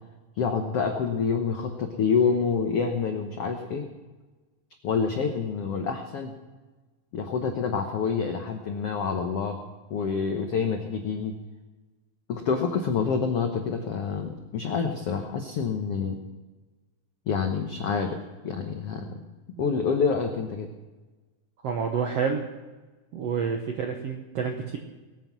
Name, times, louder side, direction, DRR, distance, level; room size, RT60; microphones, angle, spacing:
voice 1, 0.4-3.8 4.8-6.3 7.1-9.6 9.9-11.3 12.3-16.2 17.3-18.2 18.4-19.2 19.6-20.7, left 5 dB, 80° left, 4 dB, 1.3 m, -27 dB
voice 2, 21.6-22.5 23.1-24.8, right 6 dB, 75° right, 3 dB, 1.4 m, -28 dB
20.0 x 9.4 x 6.0 m, 1.2 s
omnidirectional pair, 4.2 m